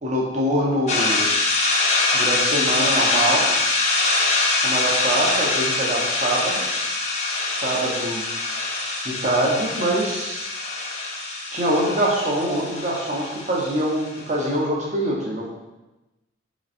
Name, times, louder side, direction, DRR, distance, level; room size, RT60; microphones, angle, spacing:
voice 1, 0.0-1.3 2.1-3.5 4.6-6.7 7.5-8.2 9.0-10.5 11.5-15.7, right 1 dB, 40° right, -3 dB, 0.7 m, -24 dB
sound 1, 0.9-14.2, left 3 dB, 40° left, 0.5 m, -24 dB
4.0 x 3.0 x 2.6 m, 1.0 s
head